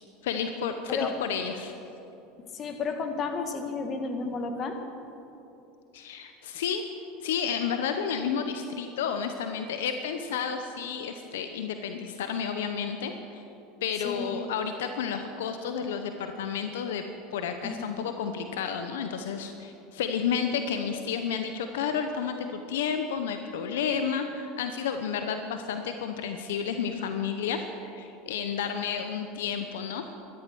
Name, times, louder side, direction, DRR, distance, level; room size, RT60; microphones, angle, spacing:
voice 1, 0.2-1.7 5.9-6.8 7.2-13.4 13.8-17.1 17.3-30.0, left 7 dB, 80° left, 7 dB, 0.8 m, -31 dB
voice 2, 2.5-4.8 14.0-14.4 17.6-18.1, left 4 dB, 40° left, 6 dB, 1.8 m, -32 dB
13.0 x 13.0 x 6.2 m, 2.8 s
hypercardioid pair, 95°, 0 cm